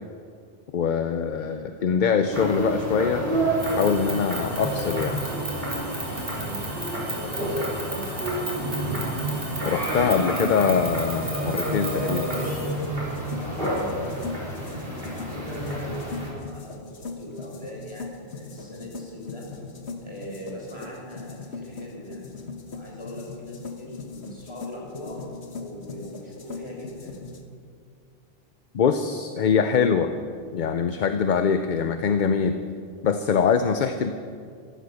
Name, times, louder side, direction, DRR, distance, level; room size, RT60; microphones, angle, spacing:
voice 1, 0.7-3.2 3.7-5.2 9.6-12.3 28.7-30.1 30.5-32.6 33.0-34.1, left 6 dB, 55° left, 8 dB, 0.7 m, -23 dB
voice 2, 1.3-1.8 6.3-6.6 6.9-8.5 13.2-19.5 20.0-22.3 22.7-25.2 25.6-27.2, equal, 25° left, -3 dB, 4.8 m, -41 dB
sound 1, 2.3-16.3, right 1 dB, 60° right, 4.5 m, -29 dB
sound 2, 3.5-12.7, right 1 dB, 75° right, 4.4 m, -35 dB
sound 3, 9.4-27.4, left 4 dB, 85° left, 1.5 m, -40 dB
14.0 x 13.5 x 6.4 m, 2.3 s
omnidirectional pair, 1.1 m